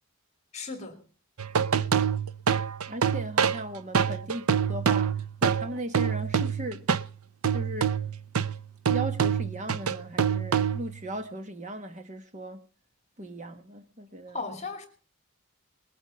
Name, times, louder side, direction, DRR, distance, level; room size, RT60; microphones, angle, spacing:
voice 1, 0.5-1.1 14.3-14.9, left 4 dB, 30° left, 2.4 m, -36 dB
sound 1, 1.4-7.1 7.4-11.0, right 7 dB, 80° right, 0.7 m, -26 dB
voice 2, 2.9-6.9 7.5-8.0 8.9-12.7 13.2-14.4, right 1 dB, 35° right, 1.4 m, -37 dB
20.5 x 8.2 x 7.0 m
head